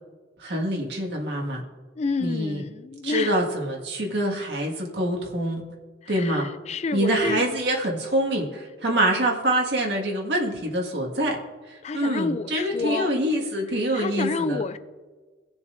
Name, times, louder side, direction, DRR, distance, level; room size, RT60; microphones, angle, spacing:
voice 1, 0.4-1.6 2.2-2.6 3.0-5.6 6.1-6.5 6.9-11.4 11.7-14.6, right 1 dB, 70° right, -1 dB, 1.9 m, -25 dB
voice 2, 2.0-3.4 6.1-7.4 11.8-13.1 13.9-14.8, left 4 dB, 35° left, 12 dB, 0.4 m, -29 dB
19.5 x 7.1 x 2.6 m, 1.3 s
head